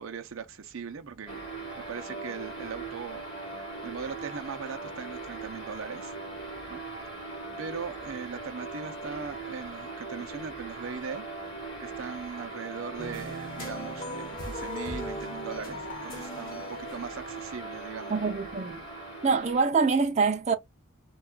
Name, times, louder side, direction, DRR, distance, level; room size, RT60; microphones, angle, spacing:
voice 1, 0.0-1.5 1.8-6.1 6.7-6.8 7.6-11.3 11.8-18.3, right 6 dB, 75° right, 0.6 m, -39 dB
sound 1, 1.3-19.6, right 3 dB, 25° left, 2.0 m, -40 dB
sound 2, 13.0-17.6, left 1 dB, 45° left, 1.2 m, -40 dB
voice 2, 18.1-18.8 19.2-20.5, right 4 dB, 35° right, 0.6 m, -25 dB
4.4 x 2.3 x 2.2 m
head